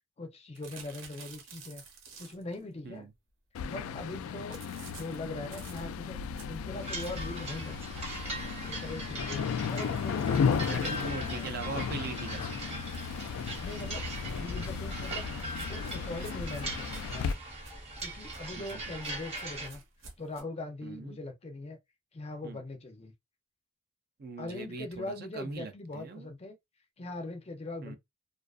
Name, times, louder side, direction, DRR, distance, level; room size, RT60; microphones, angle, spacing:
voice 1, 0.2-1.8 2.2-3.1 3.6-6.2 6.5-8.1 8.6-10.9 11.3-11.5 13.6-15.3 15.7-17.3 18.0-19.8 20.2-21.8 22.1-23.1 24.4-26.6 27.0-28.0, left 2 dB, 30° left, 0.5 m, -41 dB
sound 1, 0.5-2.6 4.5-7.4 7.9-8.0 8.3-8.4 8.7-8.8 9.5-12.0 12.8-14.6 15.4-20.4, right 5 dB, 70° right, 0.9 m, -53 dB
sound 2, 3.5-17.3, left 6 dB, 90° left, 0.3 m, -34 dB
sound 3, 6.8-19.7, right 2 dB, 30° right, 1.0 m, -41 dB
voice 2, 10.6-12.8 18.6-18.9 20.8-21.2 22.4-22.6 24.2-26.3 27.8-28.0, right 3 dB, 45° right, 0.4 m, -41 dB
2.4 x 2.4 x 2.3 m
head